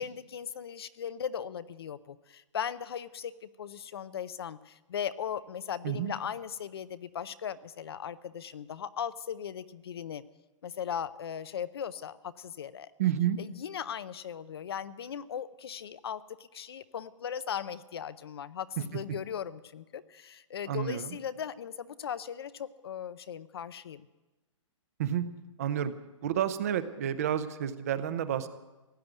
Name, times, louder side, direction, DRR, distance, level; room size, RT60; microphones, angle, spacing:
voice 1, 0.0-10.2 10.6-12.9 13.4-24.1, left 8 dB, 50° left, 15 dB, 0.6 m, -38 dB
voice 2, 13.0-13.4 20.7-21.1 25.0-25.2 25.6-25.9 26.2-28.5, right 10 dB, 30° right, 12 dB, 0.7 m, -30 dB
16.0 x 9.5 x 9.0 m, 1.1 s
hypercardioid pair, 175°, 17 cm